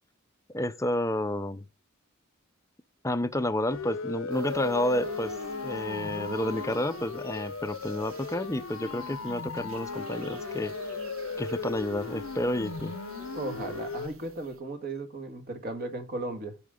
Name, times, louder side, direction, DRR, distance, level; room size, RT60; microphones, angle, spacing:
voice 1, 0.5-1.6 3.0-5.3 5.6-10.7 11.4-13.0, left 1 dB, 15° left, 0.6 m, -30 dB
Siren, 3.7-14.1, left 4 dB, 70° left, 0.7 m, -38 dB
sound 1, 4.3-14.5, left 2 dB, 75° right, 1.4 m, -41 dB
voice 2, 13.3-16.6, right 2 dB, 45° right, 1.8 m, -36 dB
14.5 x 5.1 x 3.7 m
head